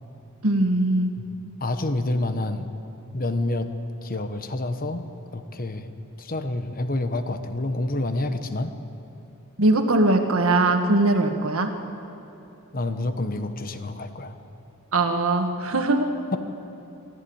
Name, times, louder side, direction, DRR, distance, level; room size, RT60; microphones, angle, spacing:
voice 1, 0.4-1.2 9.6-11.8 14.9-16.1, right 2 dB, 70° right, 5 dB, 1.8 m, -21 dB
voice 2, 1.6-2.7 3.1-3.7 4.0-5.0 5.3-5.9 6.2-8.7 12.7-14.3, left 2 dB, 40° left, 9 dB, 1.2 m, -28 dB
23.5 x 14.5 x 8.8 m, 3.0 s
head